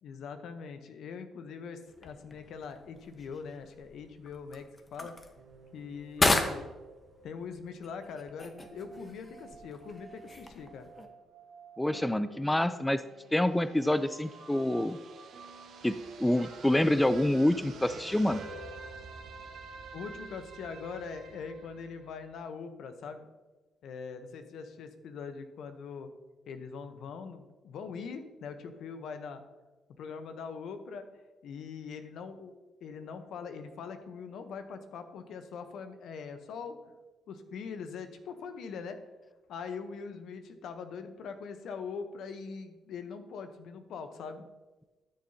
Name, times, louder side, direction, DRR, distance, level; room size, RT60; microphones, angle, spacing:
voice 1, 0.0-5.2 5.7-6.7 7.2-10.9 19.9-23.3 23.8-26.1 26.5-29.4 30.0-31.1 31.4-32.5 32.8-36.8 37.3-39.0 39.5-44.5, left 5 dB, 70° left, 8 dB, 0.9 m, -42 dB
sound 1, 1.9-11.1, left 2 dB, 30° left, 1.1 m, -36 dB
sound 2, 5.4-22.4, right 4 dB, 70° right, 1.2 m, -49 dB
voice 2, 11.8-13.0 13.3-15.0 15.8-18.4, left 1 dB, 10° left, 13 dB, 0.4 m, -27 dB
12.5 x 6.6 x 2.8 m, 1.2 s
supercardioid pair, 60°, 0 cm